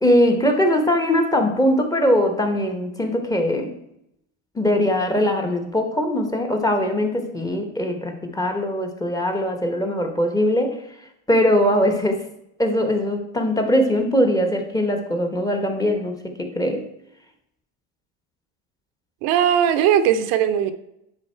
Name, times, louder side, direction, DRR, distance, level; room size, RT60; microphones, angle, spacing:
voice 1, 0.0-3.7 4.5-10.8 11.3-12.2 12.6-16.8, equal, 10° left, 4 dB, 0.9 m, -21 dB
voice 2, 19.2-20.7, right 9 dB, 65° right, 9 dB, 0.7 m, -18 dB
9.8 x 4.1 x 4.4 m, 0.80 s
cardioid pair, 135°, 36 cm